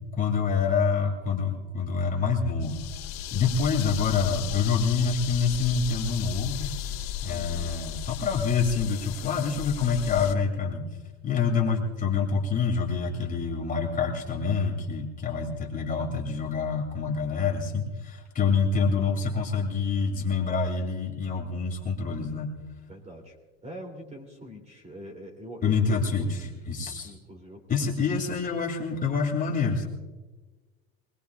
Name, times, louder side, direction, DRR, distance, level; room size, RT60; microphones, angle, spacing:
voice 1, 0.1-2.8 3.3-6.7 7.2-10.9 11.2-22.5 25.6-27.1 27.7-29.9, left 5 dB, 25° left, 1 dB, 2.5 m, -26 dB
sound 1, 2.6-10.3, left 10 dB, 60° left, 2.2 m, -35 dB
voice 2, 3.3-3.8 7.3-7.8 11.3-11.6 22.9-23.4 23.6-26.6 27.0-27.9, equal, 20° right, 3 dB, 2.8 m, -44 dB
24.5 x 20.0 x 2.4 m, 1.3 s
supercardioid pair, 130°, 31 cm